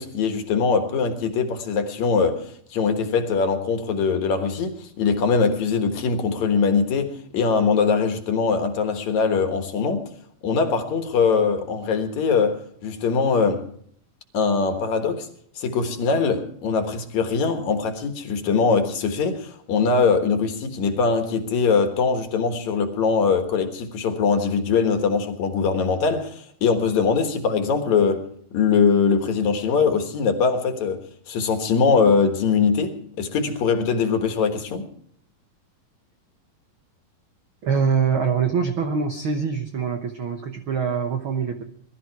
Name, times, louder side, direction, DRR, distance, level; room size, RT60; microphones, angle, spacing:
voice 1, 0.0-10.0 10.4-13.7 14.3-15.3 15.6-28.2 28.5-31.0 31.3-34.9, left 5 dB, 60° left, 2.6 m, -22 dB
voice 2, 37.6-41.6, right 6 dB, 85° right, 1.1 m, -24 dB
21.0 x 12.5 x 4.7 m
omnidirectional pair, 4.1 m